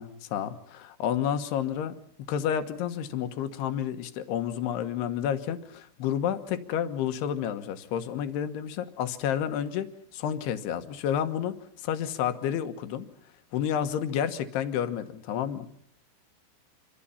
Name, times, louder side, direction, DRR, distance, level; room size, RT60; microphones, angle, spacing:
voice 1, 0.0-1.9 2.3-11.5 11.8-13.1 13.5-15.7, left 9 dB, 75° left, 9 dB, 3.3 m, -30 dB
26.5 x 24.5 x 5.7 m, 0.62 s
omnidirectional pair, 4.9 m